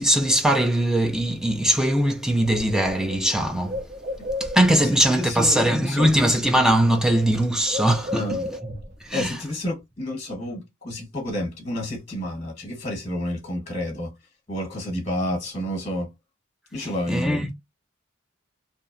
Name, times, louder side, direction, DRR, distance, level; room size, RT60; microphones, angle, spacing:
voice 1, 0.0-3.8 4.4-9.4 16.8-17.5, right 1 dB, 5° right, 0.3 m, -21 dB
Bird, 2.0-2.1 2.4-4.9 6.0-6.2 6.5-8.9, left 2 dB, 50° right, 0.7 m, -34 dB
voice 2, 5.1-6.1 8.1-8.4 9.1-14.1 14.5-16.1 16.7-17.5, left 1 dB, 30° left, 1.0 m, -30 dB
2.6 x 2.0 x 2.5 m
head